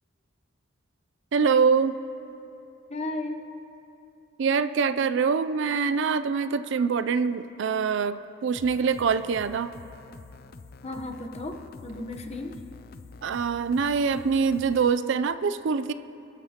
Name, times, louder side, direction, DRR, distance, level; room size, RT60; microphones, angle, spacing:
voice 1, 1.3-2.0 4.4-8.2 8.4-9.7 13.2-15.9, right 5 dB, 60° right, 13 dB, 0.4 m, -24 dB
voice 2, 2.9-3.4 10.8-12.6, left 2 dB, 30° left, 4 dB, 0.9 m, -34 dB
sound 1, 8.5-14.9, left 4 dB, 45° left, 0.4 m, -47 dB
23.0 x 13.0 x 2.9 m, 2.8 s
head